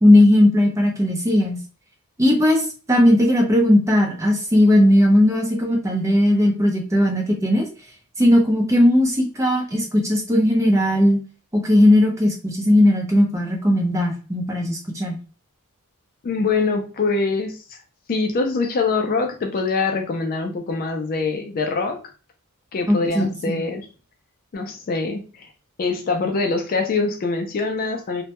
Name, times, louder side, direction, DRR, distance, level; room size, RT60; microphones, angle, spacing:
voice 1, 0.0-1.6 2.2-7.7 8.2-11.2 11.5-15.2 22.9-23.6, left 1 dB, 15° right, 1 dB, 0.5 m, -17 dB
voice 2, 16.2-17.8 18.1-22.0 22.7-23.9 24.5-25.5 25.8-28.2, left 4 dB, 40° left, 4 dB, 0.3 m, -24 dB
2.1 x 2.1 x 2.8 m, 0.36 s
head